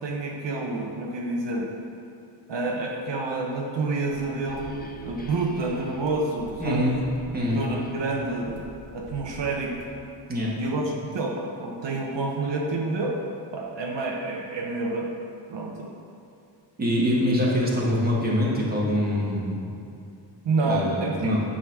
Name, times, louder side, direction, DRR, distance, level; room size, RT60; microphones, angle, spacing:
voice 1, 0.0-1.7 2.5-6.9 7.5-8.6 8.9-9.7 10.5-13.2 13.5-15.1 15.5-15.9 20.4-21.4, right 2 dB, 75° right, -1 dB, 1.0 m, -28 dB
sound 1, 4.0-7.0 7.4-8.4, left 1 dB, 20° left, 0.4 m, -44 dB
sound 2, 4.1-10.0, left 1 dB, 45° left, 1.2 m, -47 dB
voice 2, 6.6-6.9 7.3-7.6 10.3-10.5 16.8-19.7 20.6-21.4, equal, 20° right, -5 dB, 1.5 m, -24 dB
9.9 x 4.1 x 6.1 m, 2.6 s
wide cardioid pair, 180°, 43 cm